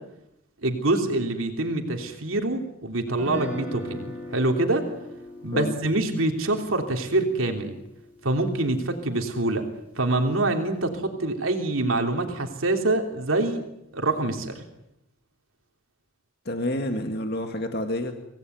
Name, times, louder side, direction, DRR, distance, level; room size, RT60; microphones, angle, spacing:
voice 1, 0.6-4.1 4.3-4.8 5.4-7.8 8.2-9.6 9.9-13.6 13.9-14.6, right 2 dB, 85° right, 3 dB, 3.2 m, -25 dB
Guitar, 3.1-9.2, left 1 dB, 10° right, 7.5 m, -40 dB
voice 2, 16.5-18.1, left 1 dB, 50° left, 5 dB, 2.1 m, -28 dB
25.5 x 18.0 x 9.5 m, 0.84 s
head